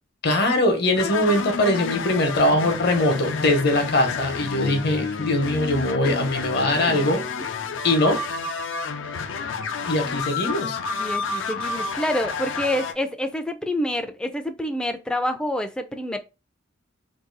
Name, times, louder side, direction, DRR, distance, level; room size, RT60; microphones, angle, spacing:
voice 1, 0.2-7.2 7.8-8.2 9.9-10.8, left 1 dB, 60° left, 0.8 m, -21 dB
sound 1, 1.0-12.9, left 4 dB, 85° left, 0.5 m, -30 dB
voice 2, 11.0-16.2, left 1 dB, 5° left, 0.3 m, -27 dB
2.6 x 2.6 x 3.8 m
head